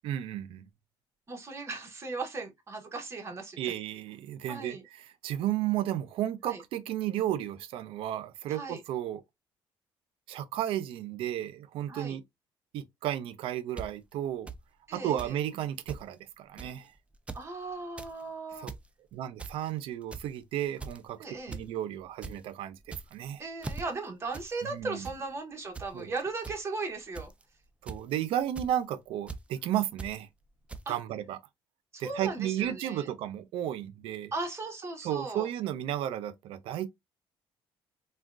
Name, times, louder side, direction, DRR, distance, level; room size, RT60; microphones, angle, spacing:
voice 1, 0.0-0.6 3.6-9.2 10.3-12.2 12.7-14.5 14.9-16.9 18.6-18.7 19.1-21.2 21.5-23.4 24.7-25.1 25.9-26.1 27.8-30.3 30.9-31.4 32.0-34.3 35.0-36.9, right 11 dB, 75° right, 0.5 m, -33 dB
voice 2, 1.3-3.7 4.5-4.8 6.4-6.6 8.5-8.8 11.9-12.2 14.9-15.3 17.3-18.7 21.2-21.6 23.4-27.3 30.9-31.0 31.9-33.1 34.3-35.5, right 3 dB, 30° right, 0.9 m, -37 dB
sound 1, 13.8-13.9 14.5-14.6 15.2-15.4 15.6-15.7 15.9-16.0 16.6-16.8 17.1-17.4 17.8-18.1 18.5-18.8 19.4-19.7 20.1-20.4 20.8-21.1 21.5-21.7 22.0-22.3 22.8-23.2 23.6-23.8 24.3-24.5 24.8-25.2 25.7-25.9 26.4-26.5 27.1-27.4 27.9-28.1 28.6-28.7 29.3-29.4 30.0-30.1 30.7-30.8, right 4 dB, 15° right, 0.3 m, -40 dB
3.5 x 2.2 x 2.4 m
cardioid pair, 120°, 9 cm